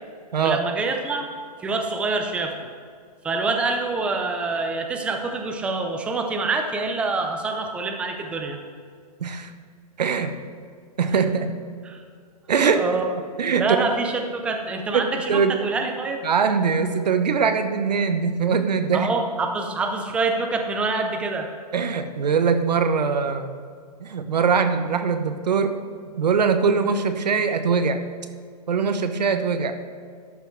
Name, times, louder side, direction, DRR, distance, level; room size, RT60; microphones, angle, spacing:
voice 1, 0.4-1.3 1.6-2.5 3.2-8.6 11.9-12.0 12.7-13.2 13.6-16.2 18.9-21.5, right 3 dB, 5° right, 4 dB, 0.5 m, -26 dB
voice 2, 9.2-9.5 10.0-10.4 11.0-11.6 12.5-12.9 13.4-13.7 14.9-15.6 16.2-19.1 21.7-23.5 24.0-25.8 26.2-28.0 28.7-29.8, right 5 dB, 85° right, 9 dB, 1.0 m, -22 dB
12.0 x 5.7 x 4.5 m, 2.1 s
hypercardioid pair, 150°, 21 cm